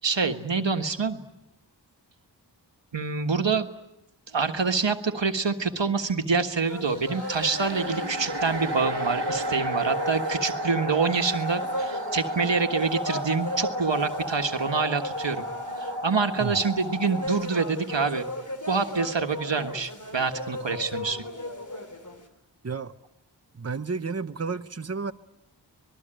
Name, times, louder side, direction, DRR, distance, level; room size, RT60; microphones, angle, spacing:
voice 1, 0.0-1.2 2.9-3.7 4.3-15.5 15.8-18.2 18.7-21.2, right 4 dB, 90° right, 1.6 m, -26 dB
sound 1, 6.7-22.3, left 1 dB, 45° left, 3.5 m, -36 dB
sound 2, 6.8-17.3, right 1 dB, 65° right, 1.5 m, -33 dB
voice 2, 23.6-25.1, right 4 dB, 35° right, 1.0 m, -31 dB
26.0 x 21.0 x 8.9 m
wide cardioid pair, 45°, 43 cm